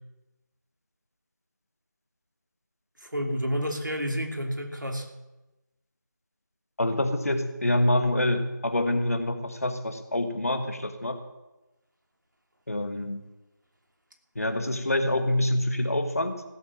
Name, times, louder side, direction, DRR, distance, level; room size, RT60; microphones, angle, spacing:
voice 1, 3.0-5.1, equal, 75° right, 2 dB, 2.8 m, -30 dB
voice 2, 6.8-11.2 12.7-13.2 14.3-16.4, left 1 dB, 50° left, 8 dB, 1.4 m, -26 dB
16.0 x 7.5 x 7.4 m, 1.0 s
figure-of-eight pair, 170°, 10 cm